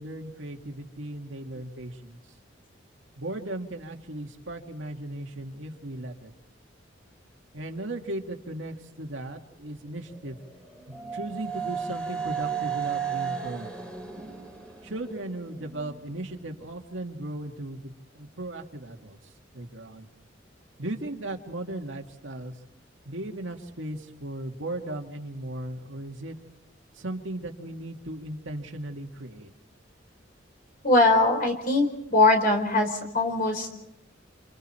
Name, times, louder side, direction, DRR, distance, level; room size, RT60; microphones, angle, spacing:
voice 1, 0.0-2.2 3.2-6.3 7.5-10.4 10.9-13.7 14.8-19.2 19.5-20.1 20.8-22.5 23.1-26.4 27.0-29.5, right 1 dB, 80° right, 3 dB, 2.2 m, -37 dB
sound 1, 10.1-16.0, right 7 dB, 5° left, 2.9 m, -34 dB
voice 2, 30.8-33.7, left 2 dB, 45° left, 4 dB, 4.4 m, -21 dB
28.5 x 28.5 x 4.5 m, 0.80 s
head